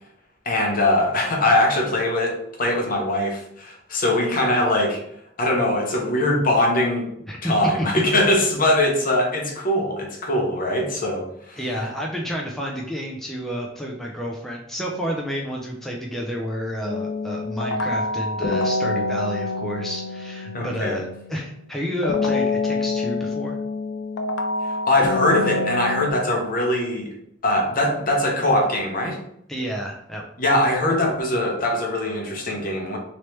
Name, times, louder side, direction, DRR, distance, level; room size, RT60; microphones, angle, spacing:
voice 1, 0.5-5.0 5.4-7.1 7.4-11.6 20.5-21.0 24.7-27.1 27.4-29.2 30.4-33.0, left 1 dB, 50° left, 1 dB, 0.8 m, -22 dB
voice 2, 11.6-21.0 21.3-23.6 29.5-30.2, equal, ahead, -2 dB, 0.4 m, -30 dB
sound 1, 16.8-21.5 22.0-26.1, left 3 dB, 85° left, 0.4 m, -26 dB
3.1 x 3.0 x 3.1 m, 0.71 s
head